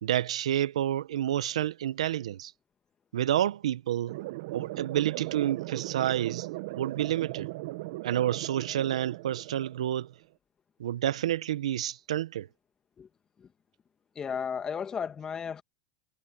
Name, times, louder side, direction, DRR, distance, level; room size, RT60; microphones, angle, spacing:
voice 1, 0.0-2.5 3.1-4.1 4.5-6.5 6.8-7.5 8.0-10.1 10.8-12.5, right 11 dB, 85° right, 1.0 m, -29 dB
sound 1, 4.1-10.1, right 20 dB, 60° right, 0.9 m, -38 dB
voice 2, 14.1-15.6, left 7 dB, 20° left, 1.6 m, -34 dB
supercardioid pair, 135°, 3 cm